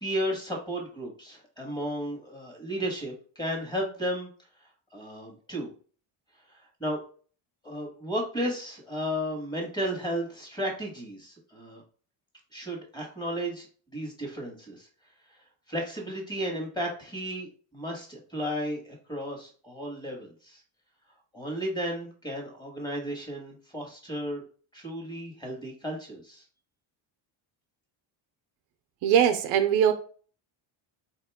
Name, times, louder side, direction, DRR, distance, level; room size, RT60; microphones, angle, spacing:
voice 1, 0.0-4.3 4.9-5.7 6.5-7.0 7.6-11.8 12.5-13.7 13.9-14.9 15.7-20.6 21.3-24.4 24.7-26.4, equal, 10° left, 0 dB, 1.6 m, -34 dB
voice 2, 29.0-29.9, right 9 dB, 80° right, 9 dB, 0.7 m, -21 dB
3.9 x 2.9 x 3.5 m, 0.41 s
cardioid pair, 95°, 49 cm